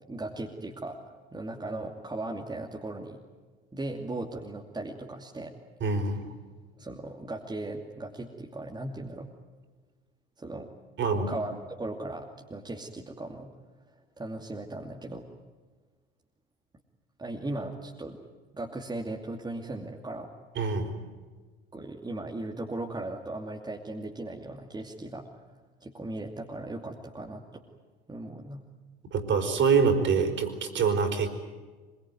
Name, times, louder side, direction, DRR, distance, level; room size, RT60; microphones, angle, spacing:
voice 1, 0.1-1.0 1.3-3.2 3.7-5.5 6.8-9.3 10.4-10.7 11.3-13.5 14.2-15.2 17.2-18.2 18.5-20.3 21.7-25.2 25.8-27.6 28.1-28.6, right 2 dB, 15° right, 1 dB, 2.7 m, -37 dB
voice 2, 5.8-6.3 11.0-11.3 20.5-20.9 29.0-31.3, right 5 dB, 40° right, 5 dB, 4.8 m, -25 dB
24.5 x 23.0 x 9.4 m, 1.4 s
figure-of-eight pair, 70°, 31 cm